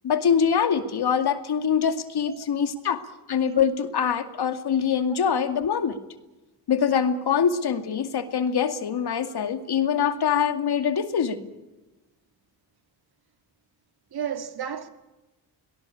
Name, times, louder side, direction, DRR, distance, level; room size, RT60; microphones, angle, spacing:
voice 1, 0.0-3.0 3.3-6.0 6.7-11.5, left 7 dB, 65° left, 2.4 m, -24 dB
voice 2, 14.1-14.9, right 8 dB, 65° right, 2.5 m, -32 dB
23.0 x 19.0 x 8.5 m
cardioid pair, 70°, 41 cm